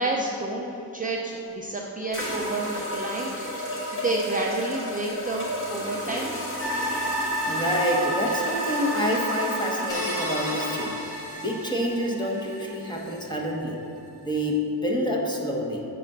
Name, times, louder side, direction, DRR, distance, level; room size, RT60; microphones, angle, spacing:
voice 1, 0.0-6.3, right 2 dB, 20° right, -2 dB, 0.5 m, -30 dB
sound 1, 1.3-1.4 2.1-10.9, equal, 30° left, 1.9 m, -32 dB
sound 2, 6.6-13.9 14.3-14.4, right 1 dB, 75° left, 1.4 m, -33 dB
voice 2, 7.4-11.0 11.4-13.8 14.2-15.8, equal, 10° left, -2 dB, 0.9 m, -27 dB
sound 3, 9.9-12.4, equal, 50° left, 1.9 m, -36 dB
7.6 x 4.1 x 6.6 m, 2.8 s
wide cardioid pair, 140°, 40 cm